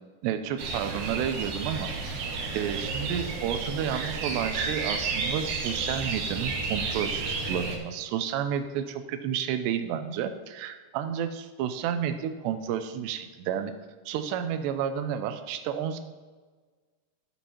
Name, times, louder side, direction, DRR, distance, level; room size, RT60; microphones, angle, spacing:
voice 1, 0.2-1.9 2.5-13.7 14.1-16.0, right 9 dB, 85° right, 9 dB, 2.8 m, -31 dB
sound 1, 0.6-7.8, right 4 dB, 65° right, 2.6 m, -32 dB
15.5 x 7.1 x 3.0 m, 1.4 s
omnidirectional pair, 4.8 m